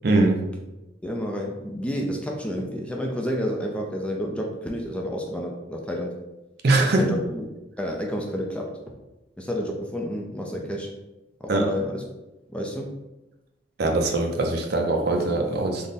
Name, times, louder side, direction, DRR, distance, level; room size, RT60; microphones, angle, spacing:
voice 1, 0.0-0.4 6.6-7.2 11.5-11.7 13.8-15.9, right 2 dB, 55° right, 2 dB, 0.5 m, -22 dB
voice 2, 1.0-6.1 7.0-7.4 7.8-8.8 9.4-10.9 11.4-12.0 12.5-13.0, equal, 5° left, 0 dB, 0.3 m, -30 dB
3.5 x 2.1 x 4.0 m, 1.0 s
head